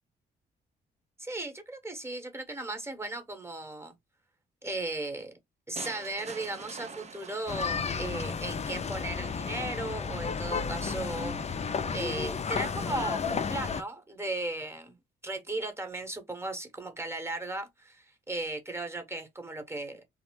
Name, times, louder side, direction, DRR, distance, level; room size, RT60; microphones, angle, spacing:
voice 1, 1.2-3.9 4.6-5.3 5.7-11.6 11.9-15.0 15.2-20.0, right 2 dB, 10° right, 1.1 m, -36 dB
sound 1, 5.8-8.8, right 5 dB, 35° right, 0.6 m, -45 dB
sound 2, 7.5-13.8, left 5 dB, 35° left, 0.5 m, -32 dB
2.7 x 2.1 x 3.0 m
supercardioid pair, 60°, 20 cm